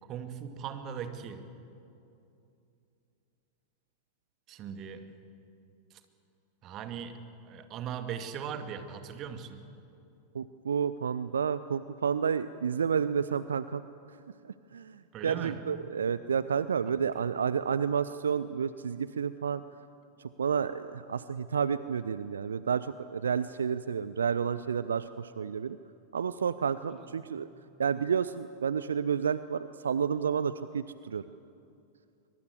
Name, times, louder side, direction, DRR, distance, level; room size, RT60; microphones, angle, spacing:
voice 1, 0.0-1.5 4.5-5.1 5.9-6.0 6.6-9.6 15.1-15.7 26.9-27.1, right 8 dB, 35° right, 8 dB, 2.1 m, -39 dB
voice 2, 10.3-13.8 14.4-19.6 20.4-25.8 26.1-27.5 27.8-31.2, right 7 dB, 70° right, 15 dB, 0.5 m, -30 dB
23.0 x 22.5 x 8.2 m, 2.6 s
figure-of-eight pair, 90°, 0 cm